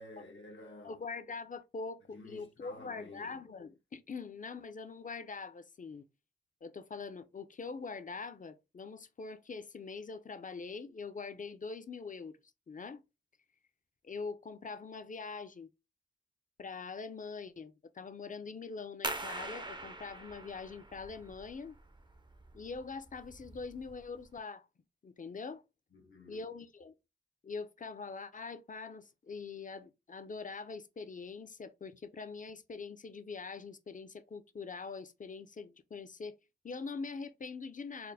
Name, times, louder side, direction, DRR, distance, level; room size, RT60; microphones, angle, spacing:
voice 1, 0.0-1.0 2.1-3.4 25.9-26.4, left 2 dB, 80° left, 1.0 m, -51 dB
voice 2, 0.8-6.0 6.6-12.4 12.7-13.0 14.0-15.7 16.6-21.8 22.5-24.7 25.0-25.6 26.3-26.9 27.4-36.4 36.6-38.1, left 4 dB, 45° left, 0.5 m, -43 dB
sound 1, 19.0-24.4, right 2 dB, 25° right, 0.4 m, -44 dB
4.2 x 2.0 x 3.9 m
wide cardioid pair, 90°, 19 cm